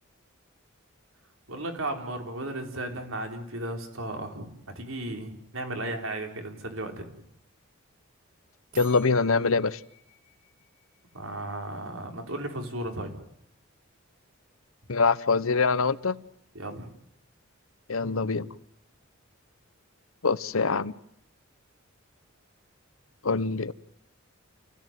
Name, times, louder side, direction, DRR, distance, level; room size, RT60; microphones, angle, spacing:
voice 1, 1.5-7.1 11.1-13.1 16.5-16.9, right 1 dB, 75° right, 4 dB, 4.7 m, -35 dB
voice 2, 8.7-9.8 14.9-16.2 17.9-18.5 20.2-20.9 23.2-23.7, left 4 dB, 85° left, 16 dB, 1.0 m, -24 dB
sound 1, 8.7-11.5, right 2 dB, 40° right, 5.9 m, -51 dB
28.5 x 16.5 x 9.2 m, 0.75 s
head